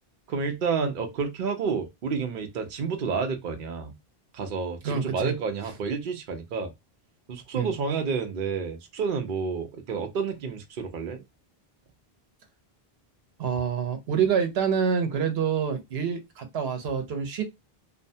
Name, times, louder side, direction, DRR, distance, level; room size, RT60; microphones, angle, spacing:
voice 1, 0.3-3.9 4.3-6.7 7.3-11.2, right 5 dB, 60° right, 0.7 m, -30 dB
voice 2, 4.8-5.3 7.5-7.7 13.4-17.4, right 7 dB, 85° right, 0.9 m, -27 dB
2.7 x 2.1 x 2.6 m
omnidirectional pair, 1.0 m